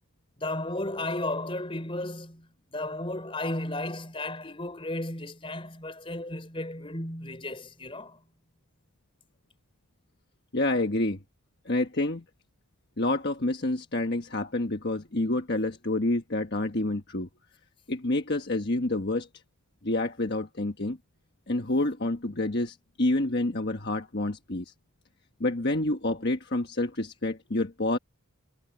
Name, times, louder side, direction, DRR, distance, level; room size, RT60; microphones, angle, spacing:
voice 1, 0.4-8.2, left 1 dB, 25° left, 4.7 m, -34 dB
voice 2, 10.5-11.2 11.6-12.2 13.0-17.3 17.9-19.3 19.8-21.0 21.5-24.7 25.4-28.0, left 2 dB, 50° left, 1.4 m, -28 dB
head